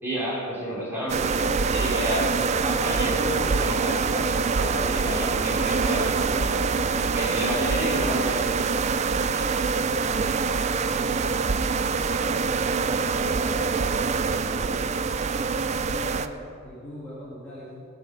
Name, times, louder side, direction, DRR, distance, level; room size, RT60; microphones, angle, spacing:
voice 1, 0.0-8.5 9.3-9.5, equal, 10° right, -7 dB, 3.6 m, -31 dB
sound 1, 1.1-16.3, right 5 dB, 30° right, 0.3 m, -25 dB
voice 2, 11.9-14.7 15.2-17.9, equal, 5° left, -10 dB, 2.1 m, -43 dB
18.5 x 6.5 x 6.0 m, 2.6 s
head